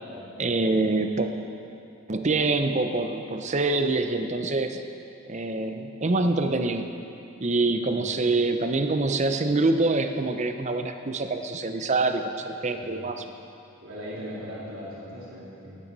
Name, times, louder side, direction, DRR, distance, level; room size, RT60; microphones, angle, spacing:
voice 1, 0.4-1.3 2.1-4.8 5.3-6.9 7.4-13.2, right 3 dB, 35° right, 7 dB, 0.6 m, -25 dB
voice 2, 7.7-8.1 12.7-13.0 13.8-15.8, equal, 75° right, -8 dB, 3.2 m, -39 dB
19.0 x 9.1 x 4.1 m, 2.7 s
head